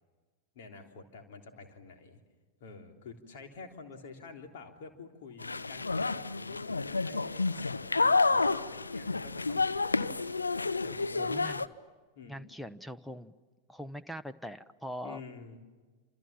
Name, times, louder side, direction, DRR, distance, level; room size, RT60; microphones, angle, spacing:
voice 1, 0.6-2.2 2.6-10.4 10.8-11.5 12.2-12.5 15.0-15.6, left 4 dB, 55° left, 4 dB, 3.5 m, -49 dB
sound 1, 5.4-11.7, left 3 dB, 80° left, 0.8 m, -30 dB
voice 2, 11.2-11.7 12.3-13.3 13.7-15.2, equal, 5° left, 12 dB, 0.8 m, -42 dB
28.5 x 28.0 x 7.4 m, 1.4 s
figure-of-eight pair, 90°, 0 cm